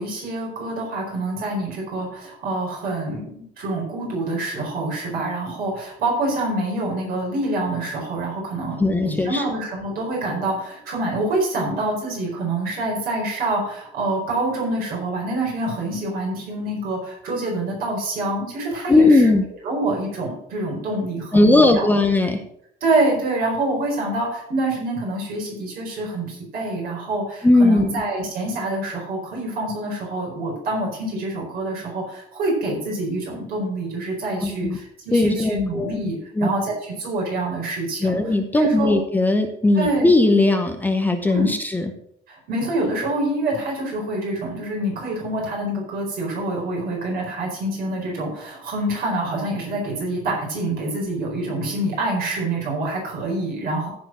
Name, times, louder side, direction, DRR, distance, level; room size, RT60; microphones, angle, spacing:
voice 1, 0.0-19.3 19.6-21.9 22.8-39.0 39.7-40.1 41.3-41.5 42.3-53.9, right 2 dB, 55° right, -2 dB, 4.5 m, -26 dB
voice 2, 8.8-9.4 18.9-19.4 21.3-22.4 27.4-28.0 34.4-34.8 35.1-36.0 36.4-36.5 38.0-41.9, left 2 dB, 10° left, 5 dB, 0.8 m, -18 dB
14.5 x 4.8 x 6.1 m, 0.73 s
cardioid pair, 155°, 19 cm